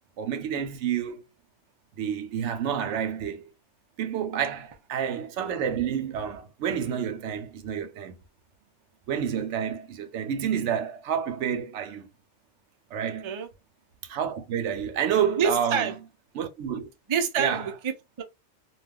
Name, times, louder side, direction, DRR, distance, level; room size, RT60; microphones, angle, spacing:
voice 1, 0.2-1.2 2.0-3.5 4.0-8.2 9.1-12.1 12.9-13.3 14.0-15.9 16.3-16.9 17.4-17.7, right 8 dB, 85° right, 0.9 m, -29 dB
voice 2, 15.4-15.9 17.1-18.2, right 6 dB, 50° right, 0.3 m, -27 dB
2.4 x 2.2 x 3.4 m
omnidirectional pair, 1.2 m